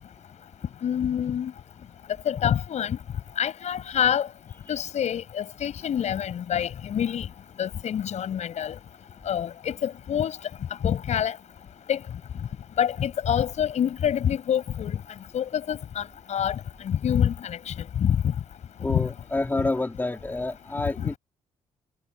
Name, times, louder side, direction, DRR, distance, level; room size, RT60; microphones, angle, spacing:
voice 1, 0.8-1.5 2.2-3.0 3.4-4.3 4.7-7.3 7.6-8.7 9.3-10.4 10.8-11.3 11.9-12.0 12.8-15.0 15.3-16.5 16.8-18.2 18.9-19.1 21.0-21.1, left 9 dB, 65° left, 6.8 m, -26 dB
voice 2, 18.8-21.2, left 2 dB, 15° left, 4.3 m, -28 dB
cardioid pair, 95°, 13 cm